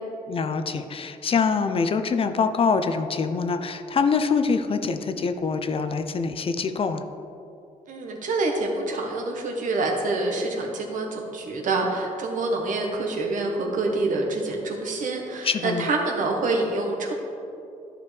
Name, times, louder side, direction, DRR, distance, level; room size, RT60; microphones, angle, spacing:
voice 1, 0.3-7.0 15.4-15.9, left 5 dB, 40° left, 9 dB, 0.5 m, -24 dB
voice 2, 7.9-17.1, right 2 dB, 70° right, 1 dB, 1.2 m, -26 dB
10.5 x 5.1 x 3.3 m, 2.7 s
cardioid pair, 85°, 14 cm